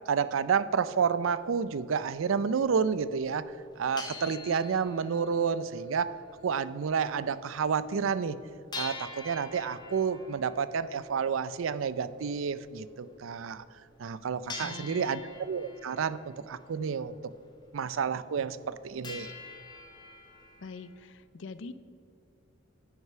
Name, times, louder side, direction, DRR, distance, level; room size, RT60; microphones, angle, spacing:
voice 1, 0.1-3.5 3.8-6.2 6.4-8.4 8.7-13.6 14.0-17.2 17.7-19.3, right 6 dB, 80° right, 16 dB, 0.4 m, -30 dB
sound 1, 1.4-1.5 2.1-2.2 2.4-2.5 3.2-3.3 3.6-6.7 7.0-7.1 7.5-7.6 7.9-8.0 8.7-13.3 13.9-14.1 14.5-17.5 17.9-18.0 18.3-18.8 19.0-20.9, left 4 dB, 20° left, 1.6 m, -46 dB
voice 2, 14.6-15.1 20.6-21.7, left 3 dB, 65° left, 14 dB, 0.5 m, -43 dB
9.5 x 8.1 x 5.5 m, 2.5 s
head